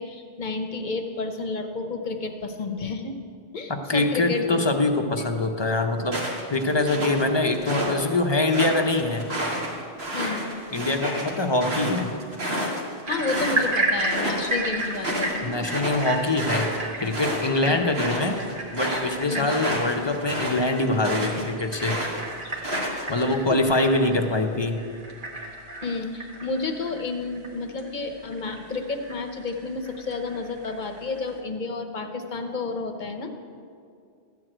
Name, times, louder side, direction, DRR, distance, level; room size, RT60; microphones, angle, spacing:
voice 1, 0.0-3.2 3.5-4.6 5.2-5.3 10.1-10.5 13.1-15.7 17.6-17.8 19.3-19.5 23.5-23.6 25.8-33.4, left 3 dB, 50° left, 5 dB, 1.0 m, -31 dB
voice 2, 3.7-6.2 6.5-9.3 10.7-12.1 15.4-16.7 17.0-18.4 18.7-22.0 23.1-24.8, left 2 dB, 30° left, 4 dB, 0.6 m, -24 dB
sound 1, 6.1-7.9 8.3-13.7 14.0-14.5 14.8-21.4 21.8-23.2, right 1 dB, 70° right, 2.0 m, -30 dB
sound 2, 13.0-31.4, right 1 dB, 50° right, 1.6 m, -33 dB
13.0 x 4.7 x 8.8 m, 2.3 s
omnidirectional pair, 1.1 m